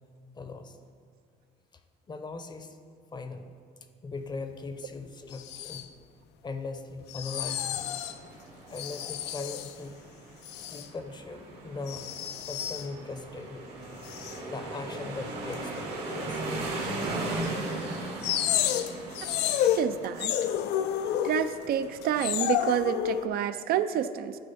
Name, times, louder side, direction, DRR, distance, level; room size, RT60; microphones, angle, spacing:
voice 1, 0.3-0.8 2.1-2.8 3.1-3.5 4.0-5.9 6.4-7.8 8.7-10.0 10.7-12.1 12.5-14.1 14.5-16.4, left 3 dB, 25° left, 8 dB, 0.6 m, -39 dB
sound 1, 5.3-5.9 7.1-8.2 8.7-9.8 10.4-10.9 11.9-12.9 14.0-14.4 15.5-15.6 16.9-17.0 17.4-17.5 18.2-21.7 22.0-23.3, left 11 dB, 80° left, 0.4 m, -30 dB
sound 2, 7.6-22.7, right 2 dB, 85° right, 1.8 m, -38 dB
voice 2, 19.8-20.3 21.2-24.4, right 9 dB, 65° right, 11 dB, 0.4 m, -28 dB
11.5 x 4.7 x 4.1 m, 2.1 s
cardioid pair, 110°, 17 cm